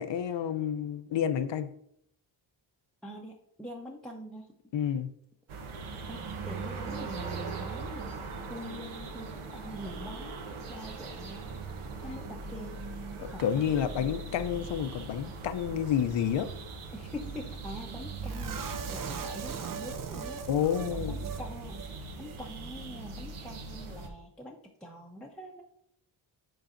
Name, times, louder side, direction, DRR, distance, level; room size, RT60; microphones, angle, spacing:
voice 1, 0.0-1.7 4.7-5.1 13.4-16.5 20.5-21.2, left 9 dB, 60° left, 0.6 m, -29 dB
voice 2, 3.0-4.5 6.1-8.2 8.5-11.5 12.0-12.8 13.2-14.1 16.9-20.5 20.9-25.6, left 1 dB, ahead, 0.7 m, -44 dB
sound 1, 5.5-24.1, right 4 dB, 75° right, 1.0 m, -40 dB
sound 2, 18.3-21.5 21.7-21.9 22.2-22.4, right 6 dB, 40° right, 0.6 m, -39 dB
10.0 x 3.9 x 2.6 m
cardioid pair, 80°, 49 cm